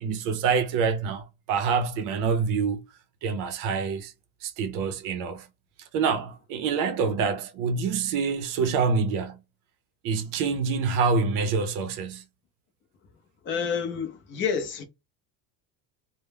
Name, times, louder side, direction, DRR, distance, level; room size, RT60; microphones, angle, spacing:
voice 1, 0.0-2.8 3.2-4.1 4.4-5.5 5.9-9.4 10.0-12.2, right 5 dB, 60° right, 0.6 m, -26 dB
voice 2, 13.4-14.8, left 6 dB, 30° left, 0.5 m, -29 dB
2.2 x 2.0 x 3.3 m
cardioid pair, 160°, 37 cm